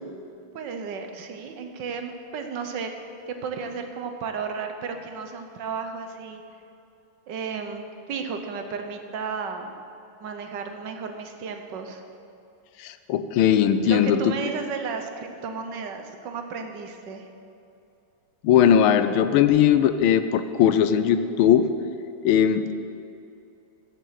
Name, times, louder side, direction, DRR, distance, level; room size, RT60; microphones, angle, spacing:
voice 1, 0.5-2.9 3.3-6.4 7.3-9.8 10.2-12.0 13.8-17.3, right 5 dB, 65° right, 6 dB, 1.5 m, -33 dB
voice 2, 12.8-14.3 18.4-21.7 22.2-22.7, left 9 dB, 85° left, 10 dB, 1.4 m, -19 dB
14.0 x 7.4 x 5.8 m, 2.7 s
omnidirectional pair, 2.3 m